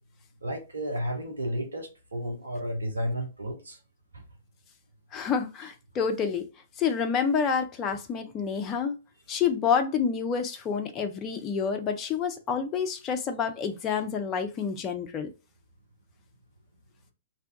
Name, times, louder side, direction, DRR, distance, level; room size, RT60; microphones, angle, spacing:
voice 1, 0.4-3.8 4.1-4.2, equal, 75° right, 0.7 m, -32 dB
voice 2, 5.1-6.5 6.8-9.0 9.3-15.3, left 6 dB, 25° left, 0.4 m, -28 dB
2.6 x 2.2 x 2.5 m
figure-of-eight pair, 110°, 0 cm